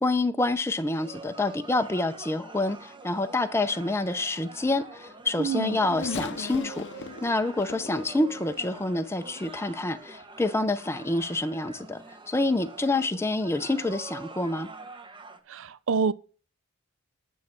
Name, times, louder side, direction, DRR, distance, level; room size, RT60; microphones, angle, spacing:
voice 1, 0.0-6.8 7.2-14.7, left 2 dB, 10° left, 0.5 m, -27 dB
sound 1, 0.9-15.4, right 3 dB, 20° right, 0.9 m, -45 dB
Race car auto racing / Accelerating revving vroom, 5.0-9.5 10.2-10.3 11.5-11.6, left 4 dB, 55° left, 0.6 m, -40 dB
voice 2, 5.4-5.8 15.5-16.1, right 5 dB, 60° right, 0.5 m, -27 dB
9.5 x 6.3 x 4.3 m
head